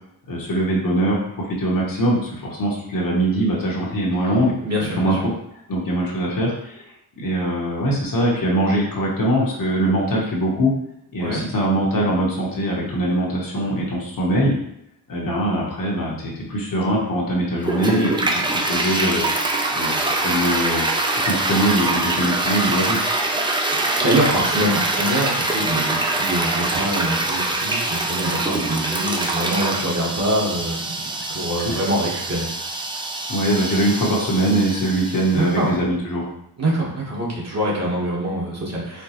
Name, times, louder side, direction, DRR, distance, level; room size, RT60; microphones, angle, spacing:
voice 1, 0.3-4.5 5.0-5.3 5.7-6.8 7.2-10.7 11.1-14.5 15.1-19.3 19.7-20.9 21.2-23.0 31.6-31.8 33.3-36.3, right 1 dB, 55° left, -3 dB, 1.0 m, -22 dB
voice 2, 4.6-5.2 11.2-11.4 23.3-30.9 31.3-32.5 35.3-35.7 36.6-39.0, right 1 dB, 40° right, -4 dB, 1.1 m, -24 dB
Toilet flush, 17.6-35.6, right 2 dB, 15° right, 0.3 m, -24 dB
4.4 x 2.2 x 2.8 m, 0.78 s
cardioid pair, 95°, 40 cm